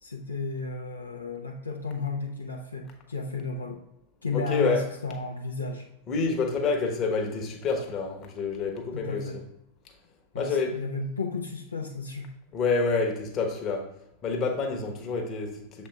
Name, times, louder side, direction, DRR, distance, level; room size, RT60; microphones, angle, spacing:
voice 1, 0.0-3.8 4.2-5.9 8.9-9.4 10.3-12.3, left 3 dB, 80° left, 0.7 m, -33 dB
voice 2, 4.3-4.8 6.1-9.2 10.3-10.7 12.5-13.9 14.2-15.9, left 4 dB, 30° left, 1.1 m, -28 dB
7.1 x 4.3 x 3.4 m
figure-of-eight pair, 90°, 0 cm